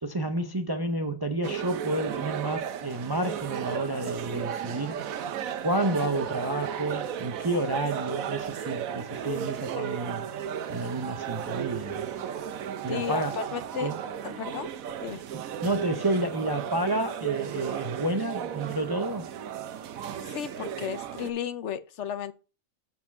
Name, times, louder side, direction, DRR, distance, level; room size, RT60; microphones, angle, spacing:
voice 1, 0.0-5.0 5.6-10.2 10.7-12.1 12.8-13.3 13.8-13.9 15.6-19.3, right 2 dB, 30° right, 0.4 m, -30 dB
sound 1, 1.4-21.3, right 9 dB, 90° right, 1.2 m, -34 dB
voice 2, 12.9-13.9 14.2-14.7 15.0-15.2 20.2-22.3, left 8 dB, 65° left, 0.9 m, -34 dB
8.5 x 4.4 x 5.7 m
omnidirectional pair, 1.4 m